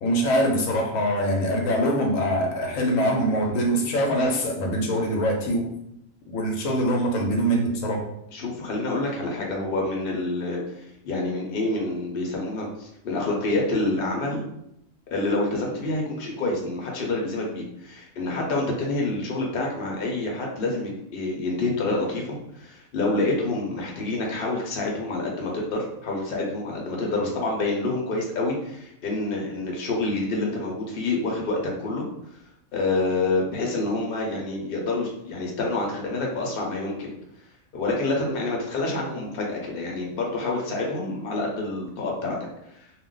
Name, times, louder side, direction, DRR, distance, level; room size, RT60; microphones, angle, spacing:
voice 1, 0.0-5.7 6.3-8.0, equal, 85° left, 1 dB, 1.0 m, -23 dB
voice 2, 8.3-14.4 15.1-32.1 32.7-37.2 37.7-42.4 42.6-42.7, left 2 dB, 50° left, -1 dB, 0.8 m, -27 dB
2.4 x 2.1 x 3.8 m, 0.78 s
omnidirectional pair, 1.4 m